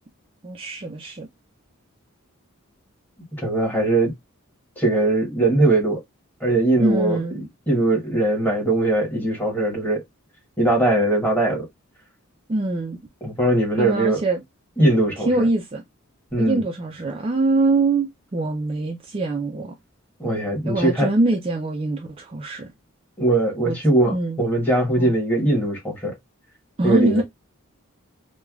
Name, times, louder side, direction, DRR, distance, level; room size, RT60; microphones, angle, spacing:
voice 1, 0.4-1.3 6.8-7.5 12.5-13.0 13.8-14.4 15.2-15.8 16.4-19.8 20.6-22.7 23.6-23.8 24.1-24.4 25.0-25.1 26.8-27.2, right 2 dB, 25° right, 0.4 m, -23 dB
voice 2, 3.4-4.1 4.8-6.0 6.4-7.2 7.7-10.0 10.6-11.6 13.2-14.2 14.8-15.5 16.3-16.6 20.2-21.1 23.2-26.1 26.8-27.2, right 2 dB, 10° left, 1.2 m, -20 dB
3.1 x 2.2 x 2.3 m
head